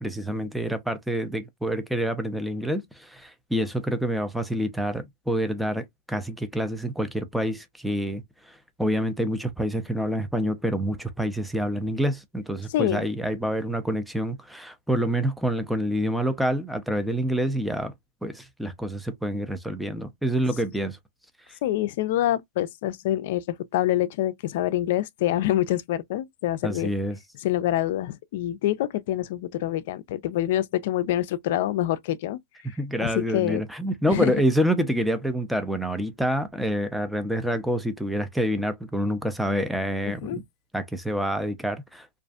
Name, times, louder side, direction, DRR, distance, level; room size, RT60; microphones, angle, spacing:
voice 1, 0.0-17.9 18.2-21.0 21.5-21.6 26.6-27.2 32.8-40.4 40.7-42.2, equal, ahead, 0.5 m, -27 dB
voice 2, 12.7-13.0 21.6-26.9 27.4-32.4 33.0-33.6 34.1-34.3 40.1-40.4, left 13 dB, 60° left, 0.3 m, -26 dB
2.4 x 2.4 x 2.3 m
hypercardioid pair, 120°, 0 cm